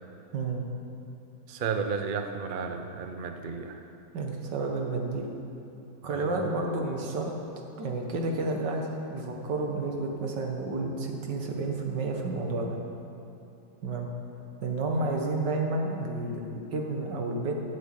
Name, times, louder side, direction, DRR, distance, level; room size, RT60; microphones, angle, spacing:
voice 1, 0.3-0.6 4.1-5.3 6.0-7.3 7.8-12.8 13.8-14.1 14.6-17.5, right 3 dB, 80° right, 2 dB, 1.9 m, -30 dB
voice 2, 1.5-3.9 6.0-6.4, right 5 dB, 60° right, 6 dB, 0.5 m, -33 dB
12.0 x 6.4 x 8.2 m, 3.0 s
omnidirectional pair, 1.9 m